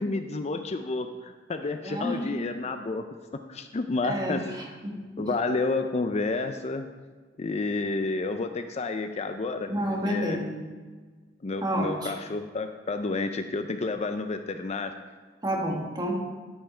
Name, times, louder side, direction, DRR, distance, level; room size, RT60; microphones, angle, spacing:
voice 1, 0.0-3.1 3.5-4.5 5.2-6.9 7.4-9.7 10.1-10.4 11.4-14.9, left 3 dB, 35° left, 7 dB, 0.5 m, -30 dB
voice 2, 1.8-2.3 4.0-4.4 4.8-5.3 9.7-10.6 11.6-12.1 15.4-16.1, equal, 25° right, -1 dB, 1.7 m, -29 dB
13.0 x 5.7 x 4.4 m, 1.4 s
head